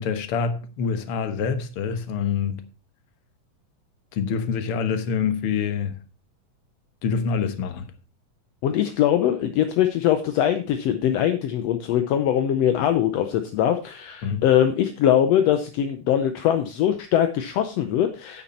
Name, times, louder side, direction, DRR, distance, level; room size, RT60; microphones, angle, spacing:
voice 1, 0.0-2.6 4.1-5.9 7.0-7.9 14.2-14.4, left 6 dB, 55° left, 1.7 m, -26 dB
voice 2, 8.6-18.4, left 10 dB, 75° left, 1.6 m, -22 dB
9.4 x 8.6 x 4.3 m
omnidirectional pair, 3.6 m